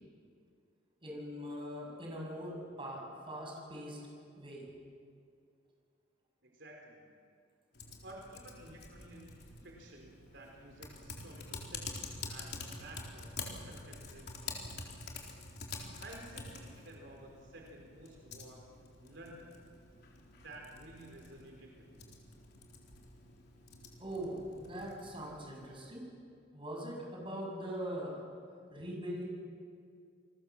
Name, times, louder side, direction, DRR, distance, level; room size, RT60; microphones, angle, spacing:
voice 1, 1.0-4.1 4.3-4.7 24.0-26.1 26.5-28.2 28.7-29.2, equal, 30° right, -1 dB, 6.9 m, -42 dB
voice 2, 6.4-7.0 8.0-14.7 16.0-18.6 19.0-19.6 20.3-22.1, right 1 dB, 70° right, 0 dB, 4.4 m, -53 dB
Typing, 7.7-25.8, left 4 dB, 60° left, 3.9 m, -48 dB
29.0 x 20.5 x 7.3 m, 2.3 s
head